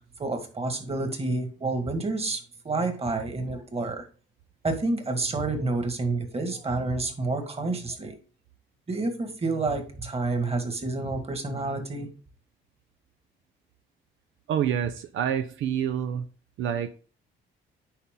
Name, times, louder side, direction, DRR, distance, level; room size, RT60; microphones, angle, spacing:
voice 1, 0.2-4.1 4.6-8.2 8.9-12.1, right 3 dB, 30° right, 1.8 m, -29 dB
voice 2, 14.5-16.3 16.6-16.9, right 9 dB, 80° right, 0.6 m, -27 dB
10.0 x 4.2 x 3.8 m
cardioid pair, 90°, 20 cm